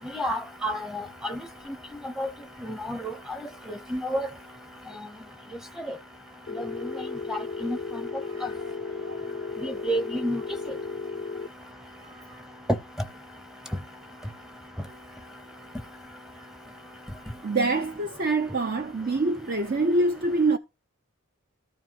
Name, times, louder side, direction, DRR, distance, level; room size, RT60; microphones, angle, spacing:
voice 1, 0.1-1.4 2.2-2.3 2.9-3.0 3.9-4.3 7.3-7.8 9.6-10.4, equal, ahead, 0.7 m, -29 dB
Telephone, 6.5-11.5, left 4 dB, 50° left, 0.5 m, -35 dB
voice 2, 8.3-9.8 12.0-12.4 17.4-20.6, right 2 dB, 45° right, 0.6 m, -27 dB
13.5 x 4.8 x 5.8 m
head